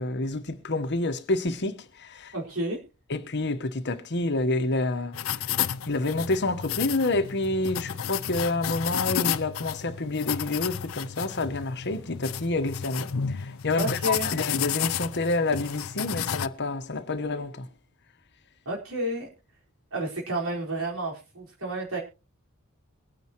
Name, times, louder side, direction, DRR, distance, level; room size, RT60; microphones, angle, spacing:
voice 1, 0.0-2.3 3.1-5.5 5.9-17.7, left 2 dB, 55° left, 1.2 m, -28 dB
voice 2, 2.3-2.8 13.8-14.3 18.6-19.3 19.9-22.0, right 1 dB, 85° right, 4.7 m, -30 dB
sound 1, 5.1-16.5, left 9 dB, 75° left, 0.6 m, -32 dB
23.0 x 9.3 x 3.0 m
head